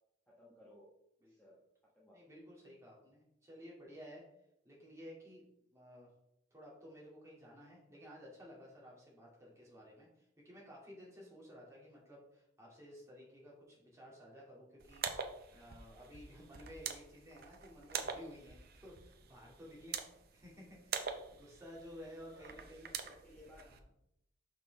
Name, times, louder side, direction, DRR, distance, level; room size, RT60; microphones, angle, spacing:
voice 1, 0.3-0.9 1.3-1.6 1.9-2.2 9.7-9.9 21.0-21.1 22.4-23.7, left 1 dB, 5° left, -7 dB, 1.1 m, -60 dB
voice 2, 1.2-1.5 2.1-4.2 4.6-5.5 5.7-6.1 6.5-22.9 23.6-23.8, equal, 15° right, -5 dB, 2.3 m, -54 dB
sound 1, 14.8-23.8, right 6 dB, 50° right, 0.6 m, -45 dB
6.1 x 5.8 x 3.4 m, 0.80 s
head